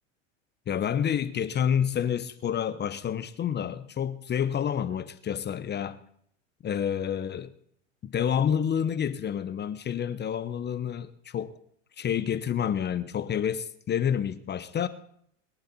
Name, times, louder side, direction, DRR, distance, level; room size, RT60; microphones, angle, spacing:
voice 1, 0.7-6.0 6.6-7.5 8.0-11.6 12.0-14.9, left 8 dB, 25° left, 0.9 m, -29 dB
22.0 x 11.5 x 4.3 m
hypercardioid pair, 90°, 39 cm